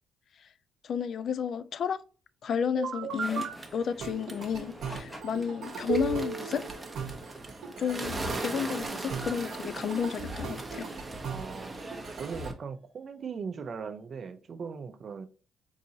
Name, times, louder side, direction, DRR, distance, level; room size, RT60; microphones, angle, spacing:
voice 1, 0.8-2.0 2.4-6.6 7.8-10.9, left 7 dB, 60° left, 0.3 m, -32 dB
sound 1, 2.8-3.5 4.0-12.5, right 5 dB, 70° right, 0.9 m, -37 dB
sound 2, 3.0-3.7 4.2-6.8, equal, 10° left, 0.9 m, -48 dB
Bird, 3.1-12.5, right 2 dB, 20° right, 0.8 m, -40 dB
voice 2, 11.3-11.8 12.2-15.3, right 5 dB, 50° right, 0.6 m, -39 dB
4.0 x 3.7 x 2.7 m
cardioid pair, 90°, 0 cm